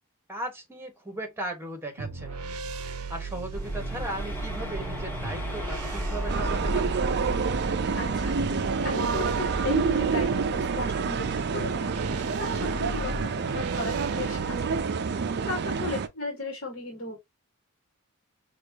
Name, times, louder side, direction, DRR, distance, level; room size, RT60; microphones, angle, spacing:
voice 1, 0.3-2.4 3.1-6.9 15.2-15.4, right 1 dB, 10° right, 1.4 m, -37 dB
sound 1, 2.0-14.8, right 3 dB, 90° right, 0.6 m, -36 dB
sound 2, 3.5-10.6, equal, 10° left, 1.7 m, -35 dB
sound 3, 6.3-16.1, right 5 dB, 50° right, 0.5 m, -28 dB
voice 2, 8.0-12.2 12.6-14.9 15.5-17.2, left 3 dB, 50° left, 1.5 m, -36 dB
6.3 x 2.5 x 2.8 m
head